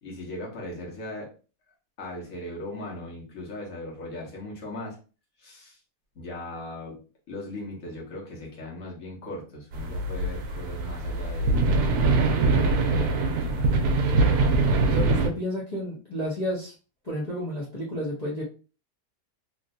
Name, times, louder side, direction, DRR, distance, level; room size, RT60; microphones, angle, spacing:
voice 1, 0.0-1.3 2.0-5.0 5.4-5.8 6.1-7.0 7.3-11.7 12.3-14.1, left 1 dB, 55° left, -2 dB, 1.5 m, -38 dB
sound 1, 9.7-15.3, right 3 dB, 75° right, 1.1 m, -23 dB
voice 2, 14.9-16.7 17.0-18.4, equal, 30° left, -7 dB, 0.9 m, -31 dB
3.2 x 2.6 x 2.6 m, 0.34 s
omnidirectional pair, 1.8 m